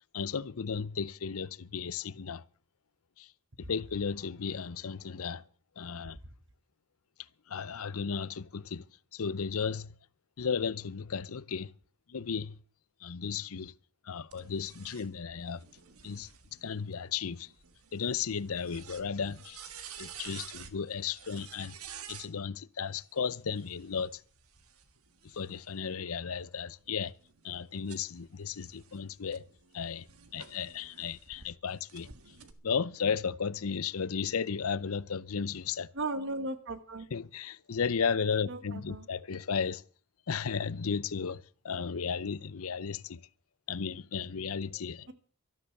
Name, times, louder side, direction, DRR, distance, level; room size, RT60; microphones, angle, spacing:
voice 1, 0.1-2.4 3.2-3.3 3.6-5.4 5.8-6.2 7.5-8.8 9.1-9.9 10.4-11.7 12.1-12.6 13.0-13.7 14.1-15.6 16.0-16.3 16.6-17.5 17.9-19.6 20.0-21.7 22.1-24.2 25.2-27.1 27.4-29.4 29.7-30.1 30.3-32.1 32.6-35.9 37.1-39.8 40.3-43.2 43.7-45.1, left 6 dB, 75° left, 0.6 m, -34 dB
sound 1, 14.3-22.3 23.4-25.8 26.4-31.5 31.9-32.5, right 8 dB, 85° right, 1.6 m, -51 dB
voice 2, 35.9-37.1 38.5-39.1, right 2 dB, 55° right, 1.5 m, -36 dB
13.0 x 12.5 x 6.6 m
head